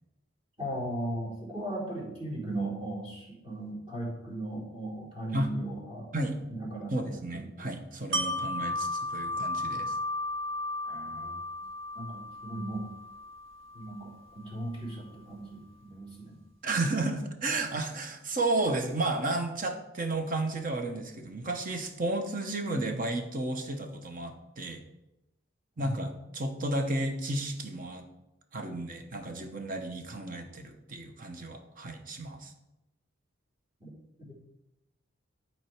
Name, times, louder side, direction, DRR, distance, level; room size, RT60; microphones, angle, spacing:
voice 1, 0.6-6.1 6.5-7.7 10.8-11.4 12.0-12.9 13.7-16.4 25.8-25.9 33.8-33.9 34.2-34.3, right 1 dB, 30° right, -5 dB, 3.6 m, -37 dB
voice 2, 6.9-10.0 16.6-24.8 25.8-28.1 28.5-32.5, right 2 dB, 45° right, 5 dB, 1.0 m, -32 dB
Wind chime, 8.1-13.9 14.3-14.4, left 1 dB, 85° right, 1.7 m, -34 dB
12.0 x 4.5 x 4.6 m, 0.93 s
head